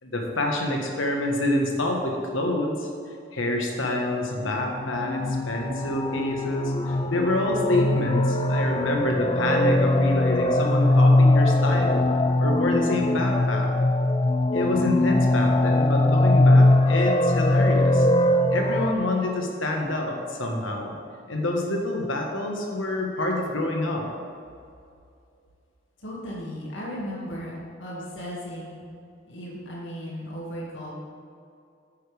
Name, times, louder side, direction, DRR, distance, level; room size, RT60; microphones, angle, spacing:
voice 1, 0.0-2.9 3.3-12.1 12.4-13.7 14.5-18.1 18.5-20.9 21.3-24.1, left 1 dB, 85° left, 1 dB, 1.5 m, -27 dB
sound 1, 4.2-18.9, left 1 dB, 25° left, 0.4 m, -21 dB
voice 2, 26.0-27.5 27.8-28.8 29.2-30.9, equal, 70° left, -5 dB, 2.3 m, -36 dB
9.7 x 8.9 x 3.5 m, 2.4 s
head